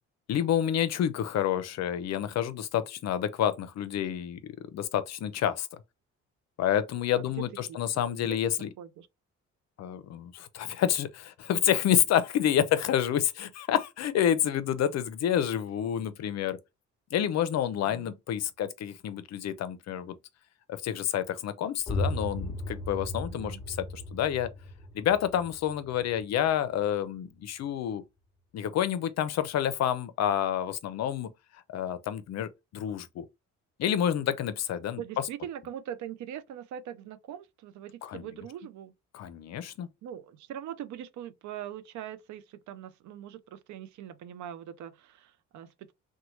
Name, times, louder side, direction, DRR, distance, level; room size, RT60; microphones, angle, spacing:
voice 1, 0.3-5.7 6.6-8.7 9.8-16.6 17.1-20.2 20.7-24.5 24.9-28.0 28.5-31.3 31.7-33.3 33.8-35.0 38.0-38.3 39.1-39.9, left 10 dB, 60° left, 0.5 m, -29 dB
voice 2, 7.7-8.0 8.4-8.5 8.8-9.1 17.8-18.1 23.2-23.6 35.0-38.9 40.0-45.9, right 10 dB, 70° right, 0.4 m, -42 dB
sound 1, 21.9-27.4, left 1 dB, 10° left, 1.0 m, -36 dB
3.0 x 2.2 x 2.9 m
cardioid pair, 90°, 30 cm